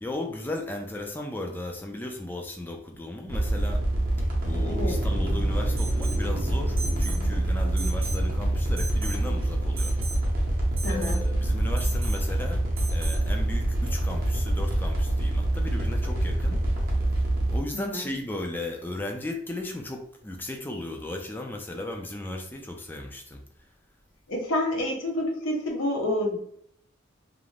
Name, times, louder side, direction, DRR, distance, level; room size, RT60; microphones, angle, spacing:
voice 1, 0.0-3.8 4.4-10.0 10.9-12.6 12.9-16.6 17.5-23.4, left 1 dB, 10° left, 3 dB, 0.3 m, -36 dB
sound 1, 3.3-17.6, right 1 dB, 45° right, 0.7 m, -26 dB
sound 2, 4.4-14.0, left 1 dB, 55° left, 1.1 m, -41 dB
Alarm, 5.8-6.3 6.8-7.2 7.8-8.3 8.8-9.2 9.8-10.2 10.8-11.2 11.8-12.2 12.8-13.2, right 4 dB, 85° right, 0.4 m, -38 dB
voice 2, 10.8-11.2 17.7-18.1 24.3-26.5, left 1 dB, 85° left, 0 dB, 0.8 m, -28 dB
2.4 x 2.1 x 3.1 m, 0.65 s
head